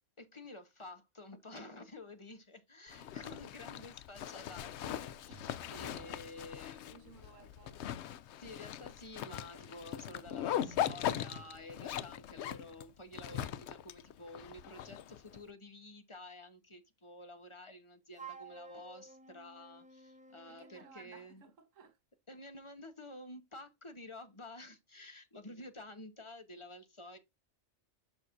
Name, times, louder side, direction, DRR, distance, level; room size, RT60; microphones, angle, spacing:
voice 1, 0.2-7.1 8.4-21.4 22.3-27.2, left 2 dB, 25° left, 1.2 m, -51 dB
Zipper (clothing), 2.9-15.4, left 11 dB, 70° left, 0.8 m, -40 dB
sound 1, 5.3-6.2 10.6-11.5, right 4 dB, 60° right, 1.8 m, -53 dB
voice 2, 6.8-8.0 20.5-22.0, right 6 dB, 85° right, 1.5 m, -58 dB
Wind instrument woodwind instrument, 18.1-21.0, right 5 dB, 5° right, 0.9 m, -52 dB
7.2 x 6.4 x 2.6 m
omnidirectional pair, 1.3 m